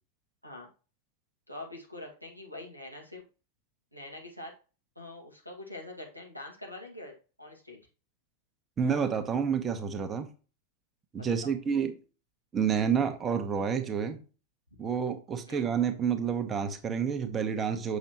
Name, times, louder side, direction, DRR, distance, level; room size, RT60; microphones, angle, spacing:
voice 1, 1.5-3.2 3.9-4.5 5.0-7.8 11.2-11.5 15.5-15.7, left 2 dB, 90° left, 2.0 m, -44 dB
voice 2, 8.8-10.3 11.1-11.9 12.5-14.2 14.8-18.0, right 7 dB, 20° right, 1.1 m, -29 dB
7.0 x 6.3 x 3.0 m
figure-of-eight pair, 90°, 0 cm